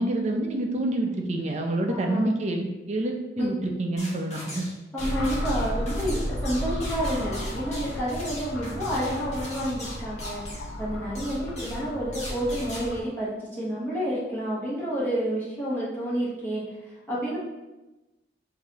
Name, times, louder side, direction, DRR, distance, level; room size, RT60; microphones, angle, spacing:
voice 1, 0.0-4.7, right 1 dB, 40° right, 2 dB, 0.5 m, -27 dB
voice 2, 1.9-2.3 3.4-3.5 4.9-10.4 10.8-16.6 17.1-17.4, equal, 10° left, -9 dB, 1.0 m, -29 dB
sound 1, 4.0-4.7 5.0-10.7 11.1-11.8 12.1-12.8, left 1 dB, 40° left, 1.3 m, -40 dB
sound 2, 5.0-13.0, equal, 90° left, 0.7 m, -33 dB
6.4 x 2.8 x 2.8 m, 1.1 s
head